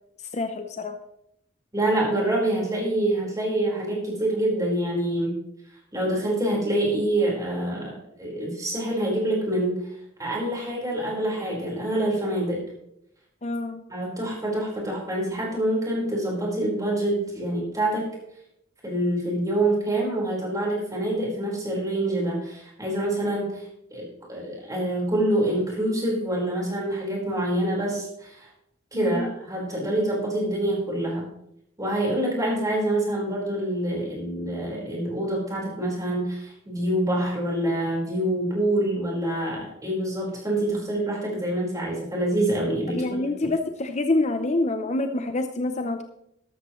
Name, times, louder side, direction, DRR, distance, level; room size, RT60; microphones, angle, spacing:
voice 1, 0.3-1.0 13.4-13.8 28.9-29.3 43.0-46.0, left 2 dB, 35° left, 7 dB, 0.7 m, -26 dB
voice 2, 1.7-5.3 5.9-9.8 10.2-12.6 13.9-18.1 18.8-23.7 23.9-28.5 28.9-31.2 31.8-43.0, right 1 dB, 20° right, -3 dB, 4.5 m, -26 dB
13.0 x 12.5 x 3.1 m, 0.77 s
head